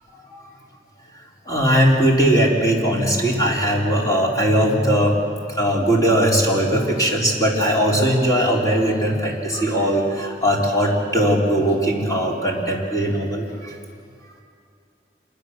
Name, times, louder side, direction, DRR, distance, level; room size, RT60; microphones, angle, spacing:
voice 1, 1.5-13.8, equal, 20° left, -2 dB, 3.7 m, -19 dB
27.0 x 22.5 x 6.6 m, 2.4 s
head